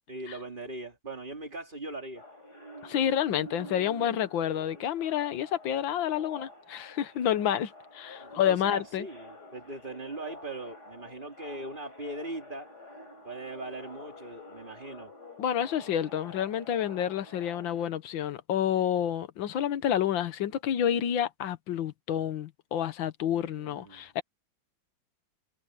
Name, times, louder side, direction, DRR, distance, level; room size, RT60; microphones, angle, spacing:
voice 1, 0.1-2.2 8.2-12.7 13.2-15.1 23.3-24.1, right 2 dB, 25° right, 3.2 m, -40 dB
sound 1, 2.1-17.8, left 1 dB, 55° left, 8.4 m, -48 dB
voice 2, 2.8-9.1 15.4-24.2, left 10 dB, 80° left, 1.8 m, -29 dB
omnidirectional pair, 2.1 m